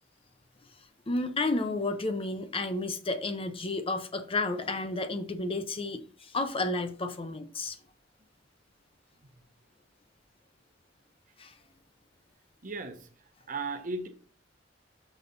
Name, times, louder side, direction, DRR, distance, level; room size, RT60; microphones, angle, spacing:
voice 1, 1.1-7.8 11.4-11.5, left 2 dB, 30° left, 0.6 m, -31 dB
voice 2, 12.6-13.0 13.5-14.1, right 3 dB, 45° right, 1.1 m, -35 dB
6.1 x 4.1 x 5.2 m
head